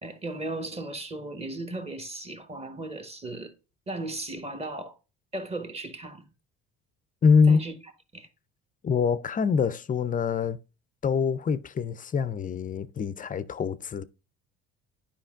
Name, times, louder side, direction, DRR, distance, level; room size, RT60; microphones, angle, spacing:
voice 1, 0.0-3.5 3.9-5.0 5.3-6.3 7.5-7.8 8.1-8.3, right 2 dB, 20° right, 1.3 m, -36 dB
voice 2, 7.2-7.6 8.8-10.6 11.0-14.0, left 5 dB, 25° left, 0.5 m, -24 dB
10.5 x 5.1 x 2.5 m
cardioid pair, 100°, 30 cm